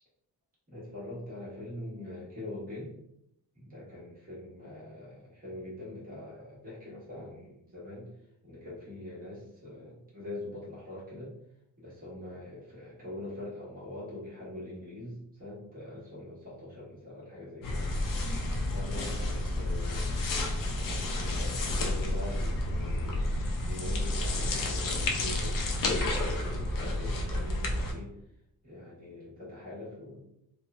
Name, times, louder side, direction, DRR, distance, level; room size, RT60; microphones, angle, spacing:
voice 1, 0.7-2.9 3.5-8.1 8.4-11.3 11.8-17.9 18.6-20.2 20.8-28.1 28.6-30.2, left 1 dB, 25° right, -8 dB, 1.0 m, -43 dB
sound 1, 17.6-27.9, left 1 dB, 60° left, 0.5 m, -30 dB
3.1 x 2.0 x 2.3 m, 0.79 s
wide cardioid pair, 150°, 37 cm